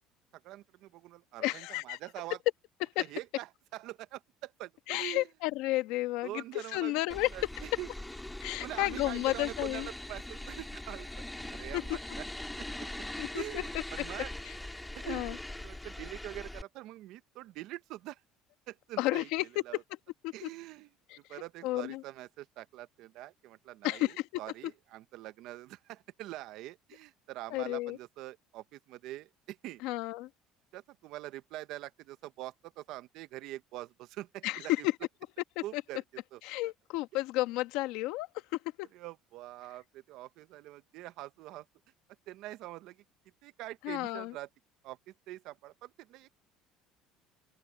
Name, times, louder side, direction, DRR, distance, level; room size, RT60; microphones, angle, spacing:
voice 1, 0.3-2.4 3.0-5.3 6.2-7.9 8.6-11.1 11.5-12.2 13.3-14.3 14.9-18.2 18.7-19.3 19.6-19.8 20.3-20.9 21.2-29.8 30.7-34.9 35.6-36.0 36.3-36.4 38.9-41.6 42.3-43.0 43.4-44.5 44.8-46.3, right 16 dB, 65° right, 1.0 m, -44 dB
voice 2, 1.4-2.0 2.9-3.0 4.9-6.4 6.7-7.3 8.4-9.9 11.7-11.8 13.2-13.6 14.4-14.5 15.0-15.4 19.0-19.4 20.2-20.5 21.1-21.2 21.6-22.0 23.8-24.3 27.5-28.0 29.8-30.3 34.4-34.8 35.5-35.8 36.4-38.3 38.8-38.9 43.8-44.3, left 18 dB, 80° left, 1.4 m, -32 dB
sound 1, 7.1-16.6, left 1 dB, 5° left, 3.0 m, -42 dB
open air
cardioid pair, 135°, 0 cm